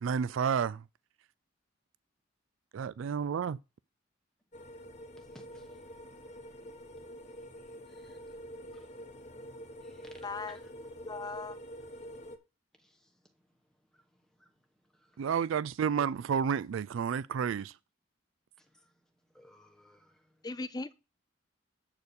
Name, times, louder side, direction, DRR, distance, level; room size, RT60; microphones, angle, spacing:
voice 1, 0.0-0.8 2.7-3.6 15.2-17.7, right 7 dB, 75° right, 0.3 m, -30 dB
sound 1, 4.5-12.4, equal, 35° left, 0.9 m, -47 dB
voice 2, 5.2-5.8 7.6-8.4 8.7-8.9 9.8-10.6 12.8-13.4 13.9-15.3 15.9-16.1 18.6-20.5, left 1 dB, 5° left, 1.1 m, -59 dB
voice 3, 10.2-10.6 11.0-11.6 20.4-20.9, left 3 dB, 20° left, 0.4 m, -38 dB
8.0 x 4.5 x 7.0 m
head